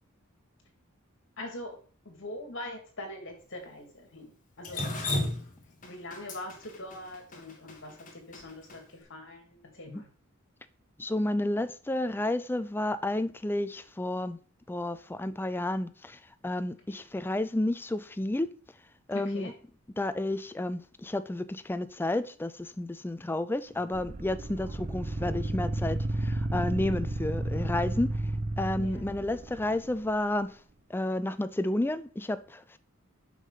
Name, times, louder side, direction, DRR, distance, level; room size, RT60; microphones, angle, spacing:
voice 1, 1.4-1.7 2.0-4.3 4.6-4.9 5.8-10.1 16.9-17.0 19.1-19.5 24.6-24.7 28.8-29.1, left 1 dB, 60° left, 2.3 m, -42 dB
Drip, 4.6-8.8, left 2 dB, 40° left, 1.7 m, -34 dB
voice 2, 11.0-14.4 14.7-18.5 19.1-19.5 20.0-28.2 28.6-30.5 30.9-32.8, left 1 dB, 10° left, 0.4 m, -31 dB
sound 1, 23.9-30.1, right 1 dB, 35° right, 0.7 m, -32 dB
6.0 x 5.8 x 5.6 m
head